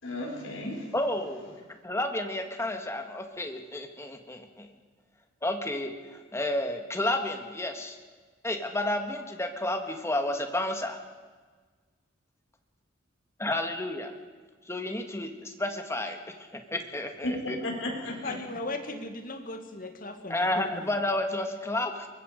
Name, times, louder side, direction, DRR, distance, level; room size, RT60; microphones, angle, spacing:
voice 1, 0.0-0.9 17.2-18.4, left 1 dB, 80° left, 0 dB, 5.1 m, -34 dB
voice 2, 0.9-1.5 1.8-4.7 5.4-8.0 8.4-11.0 13.4-14.2 14.7-16.2 16.5-17.6 20.3-22.1, left 1 dB, 15° left, 5 dB, 1.7 m, -31 dB
voice 3, 18.1-20.9, left 2 dB, 45° left, 5 dB, 2.2 m, -38 dB
23.5 x 21.0 x 5.2 m, 1.4 s
head